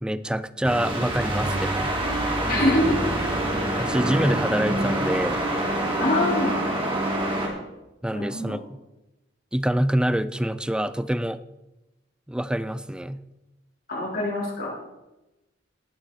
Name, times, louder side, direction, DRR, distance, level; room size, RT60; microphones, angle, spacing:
voice 1, 0.0-1.9 3.8-5.4 8.0-8.8 9.5-11.4 12.3-13.3, right 1 dB, 5° right, 14 dB, 0.4 m, -26 dB
sound 1, 0.6-7.5, right 1 dB, 30° right, 2.8 m, -26 dB
voice 2, 2.5-2.9 6.0-6.6 8.1-8.6 13.9-14.7, left 1 dB, 55° left, -3 dB, 3.9 m, -24 dB
18.5 x 6.8 x 4.8 m, 1.0 s
head